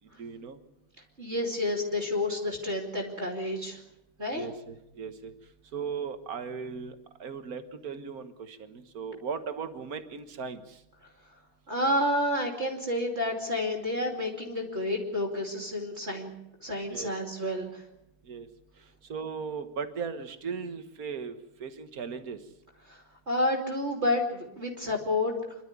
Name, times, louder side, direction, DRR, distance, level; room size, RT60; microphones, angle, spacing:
voice 1, 0.2-0.6 4.3-5.3 5.7-10.8 16.9-17.1 18.2-18.5 19.1-22.4, right 6 dB, 45° right, 10 dB, 1.7 m, -37 dB
voice 2, 1.2-3.8 4.2-4.5 11.7-16.3 16.6-17.8 22.9-25.3, left 1 dB, 30° right, 1 dB, 2.9 m, -30 dB
27.0 x 12.5 x 9.5 m, 0.89 s
omnidirectional pair, 2.3 m